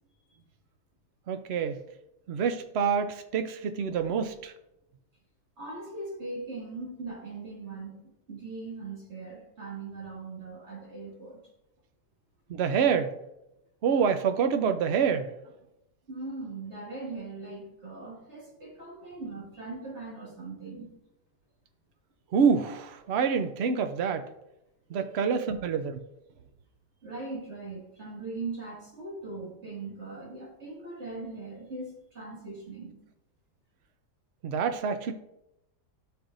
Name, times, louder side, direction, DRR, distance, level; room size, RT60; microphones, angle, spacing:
voice 1, 1.3-1.8 2.3-4.5 12.5-13.1 13.8-15.3 22.3-24.3 24.9-26.0 34.4-35.1, right 6 dB, 75° right, 8 dB, 0.6 m, -27 dB
voice 2, 5.6-11.5 16.1-20.9 24.9-25.2 27.0-33.0, right 3 dB, 40° right, -4 dB, 2.1 m, -40 dB
13.0 x 4.7 x 2.5 m, 0.86 s
omnidirectional pair, 1.8 m